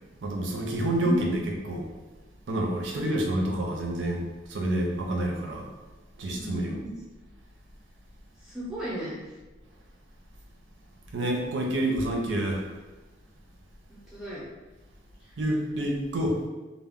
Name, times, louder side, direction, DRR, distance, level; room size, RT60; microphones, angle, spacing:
voice 1, 0.2-1.4 1.7-1.9 2.5-4.2 4.5-5.7 6.2-6.8 11.1-12.7 15.4-16.4, right 1 dB, 90° right, 0 dB, 0.5 m, -28 dB
voice 2, 1.0-1.3 2.9-3.3 6.3-6.9 8.4-9.2 13.9-14.5 15.2-15.4, equal, ahead, -9 dB, 0.6 m, -35 dB
2.2 x 2.0 x 3.5 m, 1.2 s
head